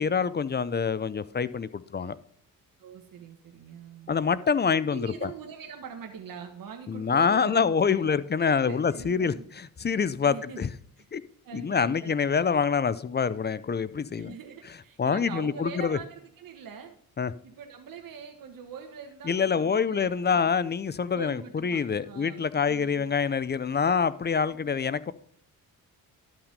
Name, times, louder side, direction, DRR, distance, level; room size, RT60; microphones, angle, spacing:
voice 1, 0.0-2.2 4.1-5.3 6.9-10.7 11.1-11.2 11.5-14.3 15.0-16.0 17.2-17.3 19.2-25.1, left 6 dB, 30° left, 0.6 m, -26 dB
voice 2, 2.8-4.1 4.8-8.1 8.4-9.4 10.2-10.7 11.0-11.1 11.4-12.5 14.1-16.9 17.4-20.5 21.1-23.1 24.4-24.7, right 7 dB, 65° right, 1.4 m, -43 dB
12.0 x 5.9 x 5.3 m
cardioid pair, 80°, 36 cm